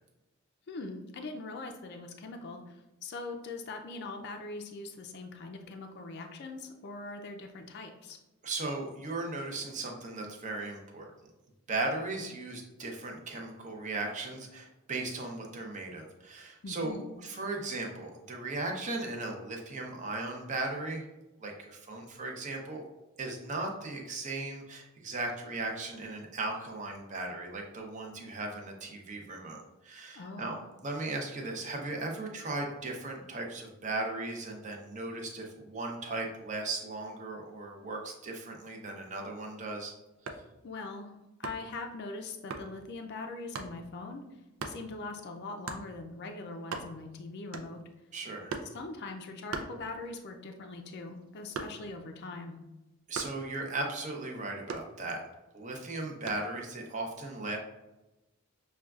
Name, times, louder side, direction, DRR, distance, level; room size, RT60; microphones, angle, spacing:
voice 1, 0.7-8.2 16.6-17.0 30.2-30.5 40.6-41.1 41.4-44.2 44.6-47.8 48.7-52.6, left 3 dB, 55° left, 4 dB, 0.4 m, -42 dB
voice 2, 8.4-11.1 11.7-21.0 21.4-22.8 23.2-29.6 29.8-30.6 30.8-39.9 48.1-48.5 53.1-55.2 55.5-57.6, right 2 dB, 35° right, 1 dB, 0.6 m, -37 dB
sound 1, 40.1-40.5 41.4-41.8 42.5-42.7 43.5-43.8 44.6-44.8 45.7-45.9 46.3-46.4 46.6-47.1 47.5-47.9 48.5-48.8 49.5-50.3 50.6-52.0 53.1-53.5 54.7-55.4 56.3-56.5, right 4 dB, 85° right, 0.5 m, -40 dB
6.3 x 2.3 x 2.3 m, 0.99 s
head